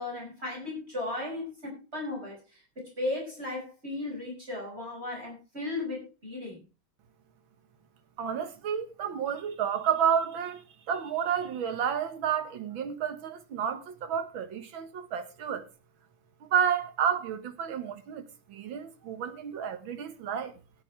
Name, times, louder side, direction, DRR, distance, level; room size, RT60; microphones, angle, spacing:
voice 1, 0.0-2.4 2.8-6.6, left 2 dB, 30° right, 5.6 m, -35 dB
voice 2, 8.2-15.7 16.4-20.5, right 8 dB, 70° right, 2.1 m, -30 dB
17.0 x 11.0 x 3.3 m
omnidirectional pair, 2.2 m